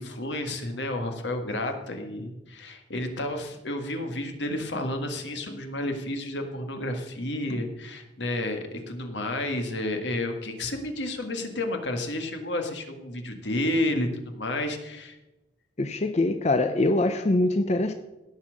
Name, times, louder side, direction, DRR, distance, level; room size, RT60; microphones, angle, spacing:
voice 1, 0.0-15.2, left 1 dB, 75° left, 5 dB, 1.7 m, -31 dB
voice 2, 15.8-17.9, left 2 dB, 40° left, 8 dB, 0.6 m, -23 dB
17.0 x 5.7 x 6.4 m, 1.0 s
head